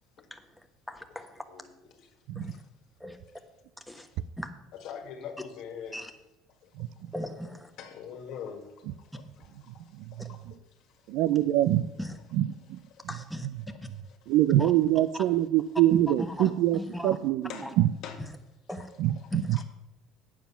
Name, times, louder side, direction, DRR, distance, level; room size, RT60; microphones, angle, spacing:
voice 1, 0.3-1.4 2.3-2.6 3.0-3.2 3.9-4.1 4.4-4.5 5.9-6.1 7.1-7.7 10.2-10.3 12.0-12.2 13.1-13.5 14.6-14.7 15.1-15.2 16.1-17.2 17.6-17.7 18.2-18.3 18.7-18.9 19.3-19.6, left 1 dB, ahead, 5 dB, 1.1 m, -38 dB
voice 2, 4.8-6.0 6.6-6.7 7.8-8.7 9.1-9.2 10.1-10.4 12.9-13.0 15.1-15.2 17.5-17.7 18.0-18.2, left 7 dB, 65° left, 5 dB, 1.7 m, -41 dB
voice 3, 11.1-11.8 12.4-12.8 14.3-17.5 17.8-17.9 19.0-19.1 19.5-19.6, right 13 dB, 75° right, 17 dB, 0.4 m, -24 dB
9.2 x 7.3 x 5.6 m, 0.96 s
cardioid pair, 115°, 0 cm